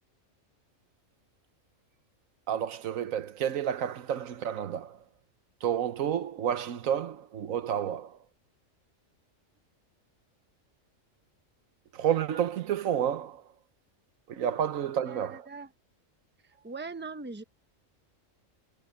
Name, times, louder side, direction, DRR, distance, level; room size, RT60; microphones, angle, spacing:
voice 1, 2.5-5.0 5.6-8.1 11.9-13.4 14.3-15.4, right 9 dB, 80° right, 1.3 m, -30 dB
voice 2, 15.0-15.7 16.4-17.4, right 4 dB, 10° right, 0.9 m, -41 dB
omnidirectional pair, 1.4 m